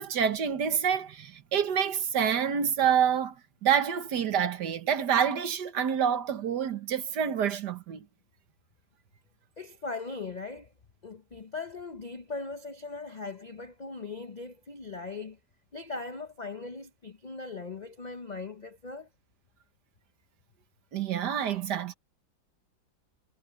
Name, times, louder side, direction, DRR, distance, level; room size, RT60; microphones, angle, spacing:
voice 1, 0.0-3.4 3.6-8.1 20.9-21.9, right 8 dB, 65° right, 1.8 m, -27 dB
voice 2, 9.6-10.7 11.0-15.4 15.7-19.1, left 3 dB, 90° left, 0.3 m, -39 dB
omnidirectional pair, 2.0 m